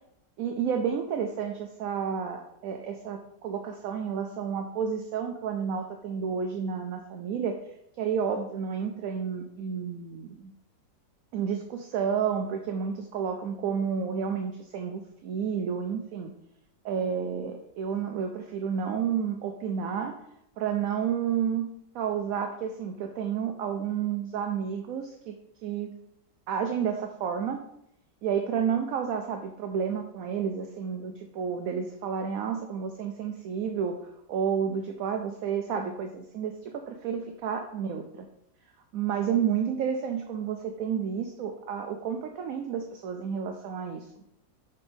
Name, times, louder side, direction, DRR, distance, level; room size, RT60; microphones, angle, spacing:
voice 1, 0.4-7.6 8.0-10.5 11.3-16.3 16.8-20.2 20.6-21.7 21.9-25.4 25.6-25.9 26.5-27.6 28.2-34.0 34.3-38.3 38.9-44.0, right 7 dB, 70° right, 5 dB, 0.9 m, -30 dB
5.3 x 4.3 x 5.2 m, 0.77 s
omnidirectional pair, 1.8 m